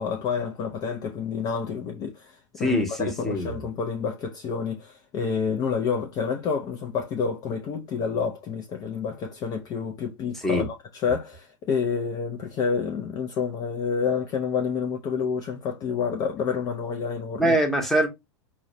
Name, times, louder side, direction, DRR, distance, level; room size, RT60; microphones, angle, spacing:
voice 1, 0.0-17.6, left 6 dB, 25° left, 0.4 m, -29 dB
voice 2, 2.6-3.6 10.4-10.7 17.4-18.1, equal, ahead, 0.9 m, -24 dB
4.5 x 2.2 x 2.6 m
figure-of-eight pair, 105°, 16 cm